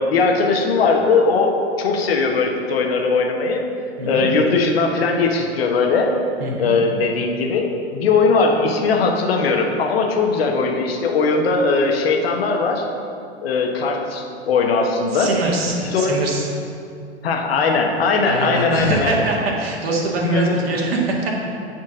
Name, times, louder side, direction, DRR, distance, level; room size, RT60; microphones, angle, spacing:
voice 1, 0.1-3.6 4.1-6.1 6.6-12.8 13.4-15.3 15.9-16.1 17.2-19.1 20.2-20.6, left 4 dB, 60° left, 2 dB, 1.3 m, -19 dB
voice 2, 6.4-6.7 15.1-16.5 18.3-21.4, right 2 dB, 65° right, -2 dB, 1.9 m, -23 dB
9.0 x 4.4 x 6.2 m, 2.5 s
figure-of-eight pair, 90°, 33 cm